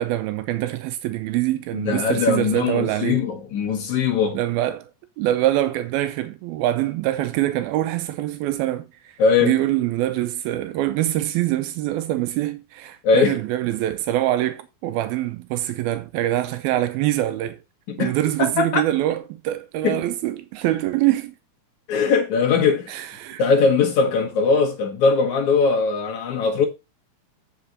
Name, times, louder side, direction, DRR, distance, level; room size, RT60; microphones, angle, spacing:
voice 1, 0.0-3.2 4.3-4.9 5.2-8.9 9.4-17.6 18.0-21.3 22.9-23.4, right 14 dB, 85° right, 2.6 m, -24 dB
voice 2, 1.7-4.4 9.2-9.6 13.0-13.4 17.9-18.1 18.4-18.8 19.8-20.0 21.9-23.0 23.4-26.7, left 5 dB, 65° left, 2.2 m, -20 dB
8.6 x 6.0 x 3.9 m
omnidirectional pair, 4.3 m